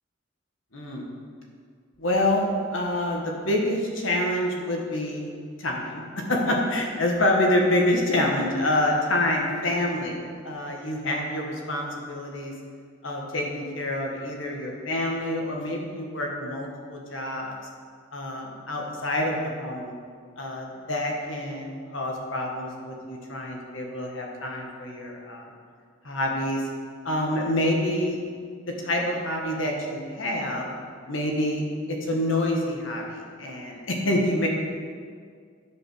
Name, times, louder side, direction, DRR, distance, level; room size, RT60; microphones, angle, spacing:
voice 1, 0.7-1.0 2.0-5.3 5.6-6.0 6.3-10.1 10.4-12.5 13.0-17.5 18.1-19.9 20.4-25.5 26.0-26.6 27.0-28.2 28.7-30.7 31.1-31.6 31.9-33.0 33.4-34.5, left 1 dB, 75° left, 0 dB, 1.6 m, -27 dB
10.0 x 5.3 x 6.2 m, 2.1 s
head